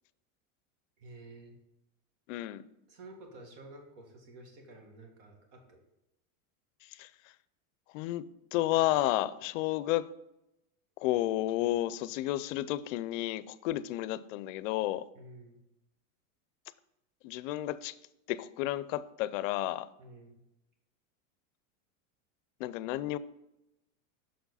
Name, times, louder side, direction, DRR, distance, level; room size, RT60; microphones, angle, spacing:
voice 1, 1.0-1.6 2.9-5.8 15.1-15.6 20.0-20.4, right 2 dB, 60° right, 2 dB, 1.8 m, -51 dB
voice 2, 2.3-2.6 7.0-7.1 7.9-10.1 11.0-15.1 17.2-17.9 18.3-19.9 22.6-23.2, left 15 dB, 65° left, 16 dB, 0.5 m, -31 dB
6.3 x 4.7 x 4.0 m, 0.89 s
supercardioid pair, 145°, 41 cm